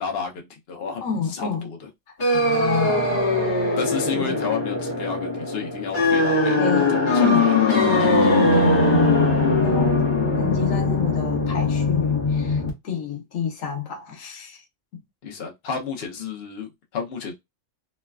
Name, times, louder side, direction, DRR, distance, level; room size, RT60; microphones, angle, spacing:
voice 1, 0.0-1.0 1.3-1.5 3.8-7.5 15.2-17.3, left 6 dB, 55° left, 0.9 m, -31 dB
voice 2, 1.0-1.7 2.3-3.3 4.1-4.5 6.6-7.5 7.8-9.3 9.6-10.0 10.3-14.6 14.9-15.0, left 6 dB, 80° left, 1.2 m, -29 dB
sound 1, 2.2-12.7, left 2 dB, 40° left, 1.1 m, -20 dB
3.1 x 2.2 x 2.3 m
omnidirectional pair, 1.3 m